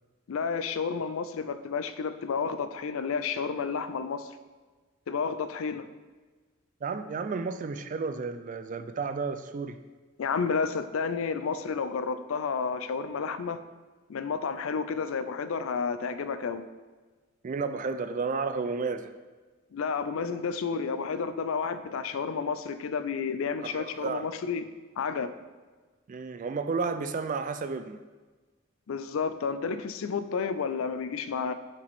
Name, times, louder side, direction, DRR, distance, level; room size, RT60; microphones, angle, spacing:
voice 1, 0.3-4.3 5.1-5.9 10.2-13.6 14.1-16.7 19.7-24.6 25.0-25.3 28.9-31.5, left 5 dB, 70° left, 12 dB, 0.4 m, -31 dB
voice 2, 6.8-9.8 17.4-19.1 23.6-24.3 26.1-28.0, right 4 dB, 40° right, 10 dB, 0.3 m, -32 dB
6.7 x 5.1 x 3.5 m, 1.3 s
head